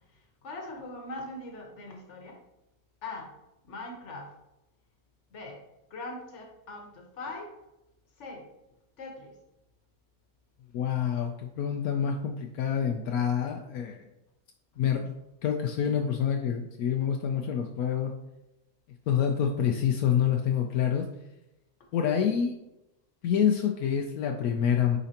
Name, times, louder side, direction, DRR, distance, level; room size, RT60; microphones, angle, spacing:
voice 1, 0.4-2.4 3.0-3.3 3.6-4.3 5.3-5.6 5.9-7.5 8.2-8.5 9.0-9.4, left 2 dB, 55° left, 2 dB, 1.4 m, -41 dB
voice 2, 10.7-14.0 14.8-15.1 15.4-18.1 19.1-21.0 21.9-22.5 23.2-25.0, left 8 dB, 80° left, 2 dB, 1.1 m, -27 dB
9.0 x 4.1 x 2.8 m, 0.91 s
omnidirectional pair, 1.5 m